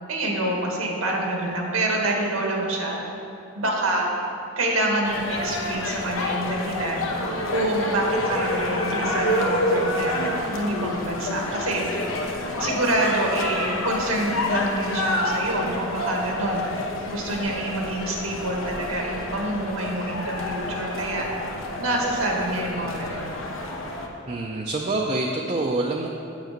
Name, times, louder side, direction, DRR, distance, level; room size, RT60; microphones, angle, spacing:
voice 1, 0.1-3.0 3.5-4.1 4.6-7.1 7.5-11.8 12.6-16.6 17.1-21.3 21.8-23.4, right 1 dB, 85° right, 0 dB, 1.8 m, -26 dB
sound 1, 5.0-24.1, left 1 dB, 70° left, 1.1 m, -28 dB
voice 2, 24.3-26.1, right 2 dB, 35° right, 0 dB, 0.5 m, -26 dB
9.3 x 7.6 x 5.1 m, 2.8 s
head